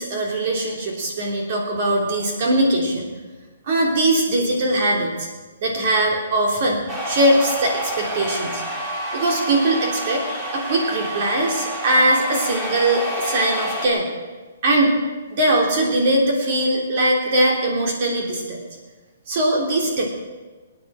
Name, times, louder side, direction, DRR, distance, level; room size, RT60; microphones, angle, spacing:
voice 1, 0.0-3.1 3.7-5.3 5.6-8.6 9.1-10.2 10.5-14.1 14.6-15.0 15.3-18.6 19.3-20.1, right 1 dB, 40° right, -1 dB, 3.2 m, -21 dB
sound 1, 6.9-13.9, equal, 15° right, 2.9 m, -29 dB
24.5 x 9.6 x 5.0 m, 1.3 s
hypercardioid pair, 165°, 0 cm